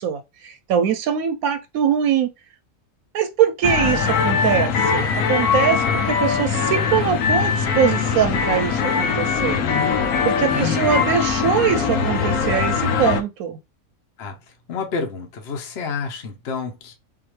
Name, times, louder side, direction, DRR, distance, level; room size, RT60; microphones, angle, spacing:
voice 1, 0.0-2.3 3.1-9.6 10.2-13.6, right 8 dB, 85° right, 1.1 m, -22 dB
sound 1, 3.6-13.2, left 6 dB, 90° left, 1.3 m, -21 dB
voice 2, 10.5-10.9 14.2-14.4 14.7-16.9, left 5 dB, 50° left, 1.0 m, -29 dB
3.7 x 2.8 x 3.0 m
omnidirectional pair, 1.5 m